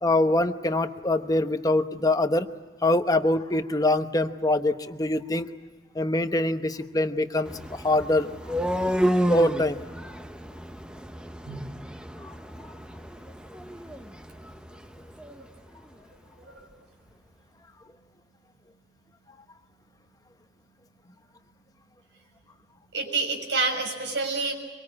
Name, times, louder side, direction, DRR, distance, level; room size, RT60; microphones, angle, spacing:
voice 1, 0.0-2.5 2.8-5.5 5.9-8.3 9.3-9.8 12.2-12.4, left 1 dB, 20° left, 8 dB, 1.0 m, -24 dB
sound 1, 7.5-15.4, equal, 5° right, 0.9 m, -31 dB
voice 2, 22.9-24.5, right 3 dB, 90° right, 3 dB, 6.1 m, -27 dB
24.5 x 23.5 x 8.7 m, 1.3 s
head